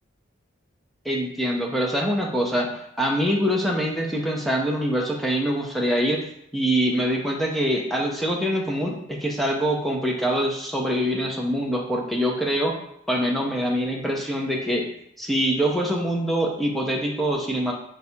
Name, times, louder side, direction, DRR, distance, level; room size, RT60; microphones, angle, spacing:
voice 1, 1.0-6.2 6.5-12.8 13.1-14.9 15.2-17.7, equal, ahead, -1 dB, 0.5 m, -24 dB
3.8 x 2.4 x 4.3 m, 0.77 s
head